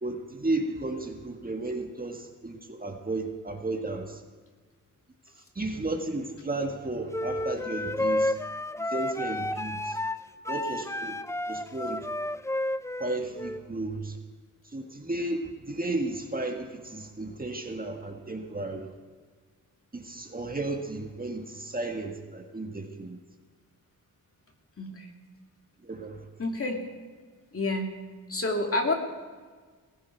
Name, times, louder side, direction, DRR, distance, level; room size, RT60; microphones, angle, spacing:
voice 1, 0.0-4.2 5.5-8.4 8.8-10.0 10.5-11.2 11.5-12.1 13.0-14.2 14.6-18.9 19.9-23.2 25.8-26.3, right 2 dB, 25° right, 3 dB, 1.7 m, -33 dB
sound 1, 7.1-13.6, left 1 dB, 10° left, 0.5 m, -31 dB
voice 2, 24.8-25.1 26.4-26.8 27.5-27.9 28.3-28.9, left 2 dB, 40° left, 2 dB, 2.6 m, -28 dB
19.5 x 15.5 x 4.6 m, 1.5 s
cardioid pair, 75°, 36 cm